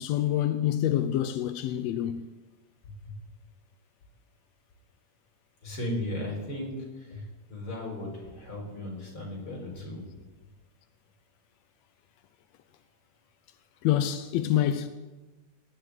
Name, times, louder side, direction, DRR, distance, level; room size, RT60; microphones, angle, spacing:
voice 1, 0.0-2.3 13.8-14.9, left 11 dB, 80° left, 1.6 m, -26 dB
voice 2, 5.6-10.1, left 1 dB, 40° left, 5.3 m, -36 dB
19.0 x 6.7 x 9.2 m
omnidirectional pair, 3.5 m